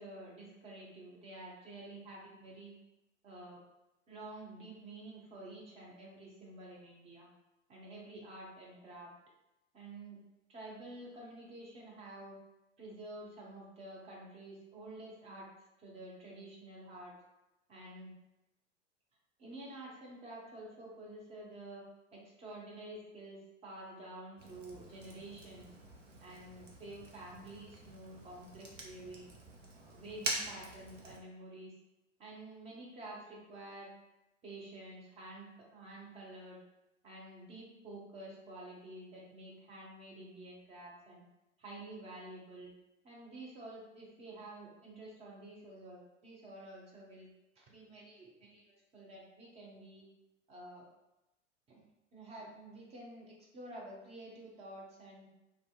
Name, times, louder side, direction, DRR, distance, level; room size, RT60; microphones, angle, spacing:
voice 1, 0.0-2.7 3.2-3.6 4.1-7.3 7.7-9.1 9.7-10.2 10.5-12.4 12.8-15.5 15.8-17.1 17.7-18.1 19.4-21.9 22.1-25.7 26.2-29.3 29.7-31.8 32.2-33.9 34.4-36.6 37.0-41.2 41.6-42.7 43.0-47.3 47.6-50.1 50.5-50.9 51.7-51.8 52.1-55.3, right 1 dB, 15° right, -3 dB, 0.6 m, -49 dB
Fire, 24.4-31.2, right 2 dB, 75° right, 0.6 m, -45 dB
2.5 x 2.2 x 2.4 m, 0.94 s
figure-of-eight pair, 90°, 37 cm